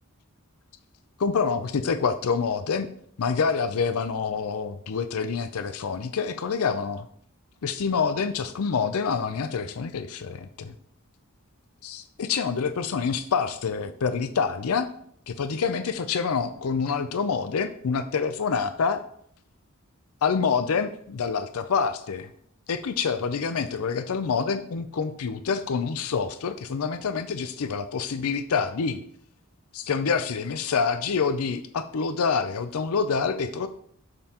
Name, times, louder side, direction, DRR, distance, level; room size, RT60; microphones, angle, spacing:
voice 1, 1.2-2.9 3.2-7.1 7.6-10.7 11.8-14.9 15.3-19.0 20.2-22.3 22.7-29.0 29.7-33.7, left 5 dB, 75° left, 11 dB, 0.5 m, -27 dB
8.8 x 6.7 x 2.9 m, 0.65 s
head